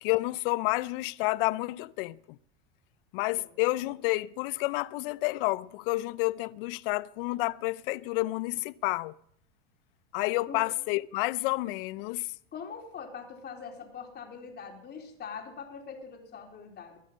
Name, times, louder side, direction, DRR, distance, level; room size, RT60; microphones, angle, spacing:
voice 1, 0.0-2.2 3.1-9.1 10.1-12.3, left 21 dB, 60° left, 0.7 m, -30 dB
voice 2, 12.5-17.0, left 6 dB, 30° left, 4.3 m, -43 dB
21.0 x 10.5 x 5.6 m
hypercardioid pair, 105°, 31 cm